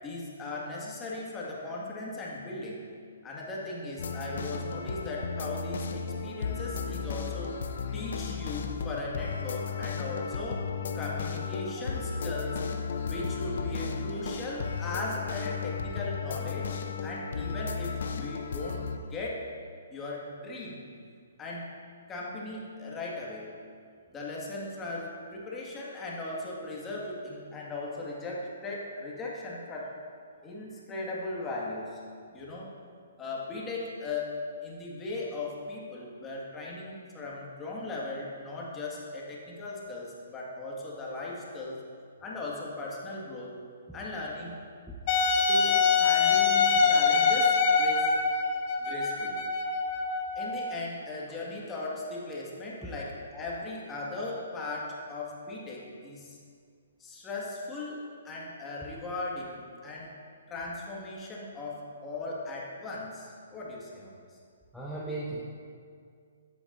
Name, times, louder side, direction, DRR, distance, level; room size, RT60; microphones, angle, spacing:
voice 1, 0.0-2.9 3.2-7.6 7.9-10.7 10.9-12.6 13.0-18.8 19.1-19.5 19.9-20.8 21.4-21.7 22.1-23.5 24.1-29.9 30.4-32.0 32.3-32.8 33.2-41.8 42.2-43.6 43.9-44.6 45.5-48.2 48.8-49.4 50.4-56.4 57.0-60.1 60.5-64.1, left 2 dB, 15° left, -4 dB, 1.9 m, -38 dB
sound 1, 4.0-19.0, left 5 dB, 65° left, 0.7 m, -34 dB
Wind instrument woodwind instrument, 45.1-50.7, left 5 dB, 35° left, 0.9 m, -24 dB
voice 2, 45.1-45.4 52.8-52.9 64.7-65.4, right 2 dB, ahead, -8 dB, 1.0 m, -37 dB
13.0 x 8.5 x 2.7 m, 2.2 s
hypercardioid pair, 135°, 0 cm